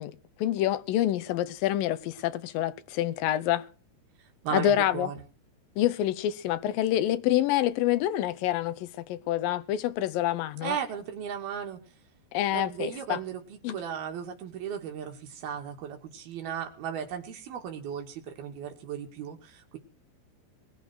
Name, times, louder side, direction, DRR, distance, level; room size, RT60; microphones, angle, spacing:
voice 1, 0.0-3.7 4.5-5.1 5.8-10.8 12.3-13.2 13.6-13.8, left 12 dB, 75° left, 2.3 m, -27 dB
voice 2, 4.4-5.2 10.6-11.8 12.5-19.8, right 8 dB, 65° right, 4.0 m, -36 dB
21.0 x 9.0 x 6.3 m
omnidirectional pair, 4.8 m